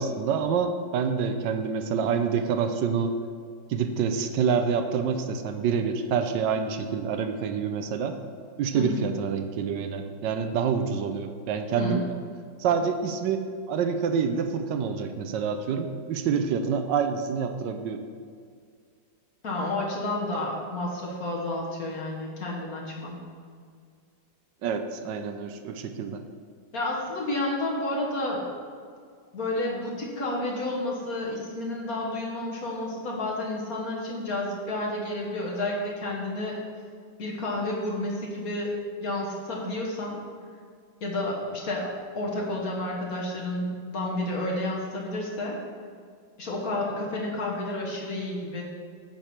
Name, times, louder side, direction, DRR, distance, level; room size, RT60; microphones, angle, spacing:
voice 1, 0.0-3.1 3.7-8.2 8.6-12.0 12.6-18.0 24.6-26.2, right 6 dB, 80° right, 7 dB, 1.3 m, -27 dB
voice 2, 8.7-9.1 11.7-12.1 19.4-23.2 26.7-28.5 29.3-36.6 37.2-38.7 39.0-40.2 41.0-45.6 46.4-48.6, left 1 dB, 55° left, -2 dB, 1.9 m, -30 dB
9.1 x 6.9 x 4.4 m, 2.1 s
omnidirectional pair, 2.0 m